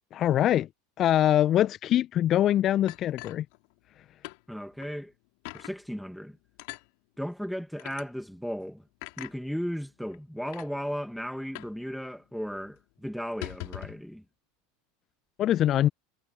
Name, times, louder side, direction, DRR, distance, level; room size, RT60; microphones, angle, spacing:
voice 1, 0.1-0.7 1.0-3.4 15.4-15.9, left 12 dB, 40° left, 1.3 m, -23 dB
sound 1, 2.9-4.0 4.2-4.4 4.8-4.9 5.4-5.7 6.6-6.9 7.8-8.0 9.0-9.3 10.1-10.2 10.5-10.7 11.5-11.8 12.1-12.2 12.5-12.7 13.2-14.0, left 34 dB, 55° left, 4.0 m, -41 dB
voice 2, 4.5-5.1 5.5-6.4 7.2-8.8 9.2-14.2, equal, ahead, 2.7 m, -35 dB
figure-of-eight pair, 80°, 0 cm